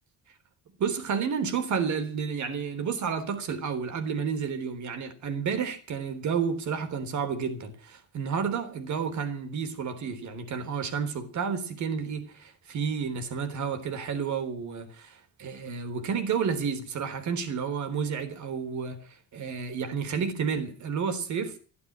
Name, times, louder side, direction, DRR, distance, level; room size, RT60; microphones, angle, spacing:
voice 1, 0.8-21.6, right 6 dB, 70° right, 3.7 m, -31 dB
14.5 x 11.5 x 8.6 m
cardioid pair, 90°, 30 cm